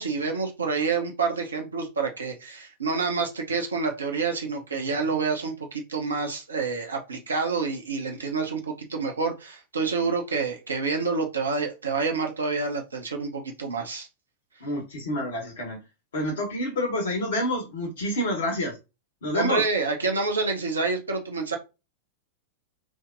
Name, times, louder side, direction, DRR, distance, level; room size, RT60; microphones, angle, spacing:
voice 1, 0.0-14.1 19.3-21.6, right 4 dB, 75° right, 3 dB, 0.7 m, -28 dB
voice 2, 14.6-15.8 16.1-18.8 19.2-19.6, left 1 dB, 60° left, 2 dB, 1.1 m, -28 dB
3.5 x 2.1 x 2.5 m, 0.27 s
figure-of-eight pair, 90°, 0 cm